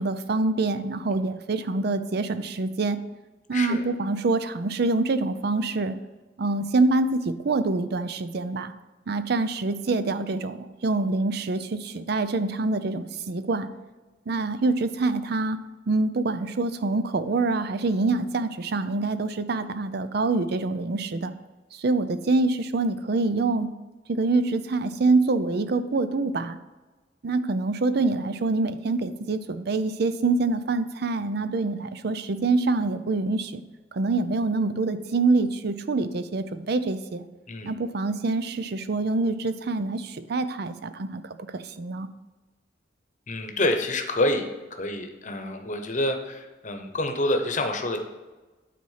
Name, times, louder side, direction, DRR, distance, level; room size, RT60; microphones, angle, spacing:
voice 1, 0.0-3.0 3.5-6.0 6.4-8.7 9.1-13.7 14.3-15.6 15.9-21.3 21.7-23.7 24.1-26.6 27.2-33.6 33.9-37.2 37.6-42.1, right 3 dB, 60° right, 11 dB, 0.5 m, -25 dB
voice 2, 3.5-3.8 37.5-37.7 43.3-48.0, left 1 dB, 40° left, 5 dB, 0.9 m, -27 dB
9.3 x 4.2 x 5.6 m, 1.2 s
head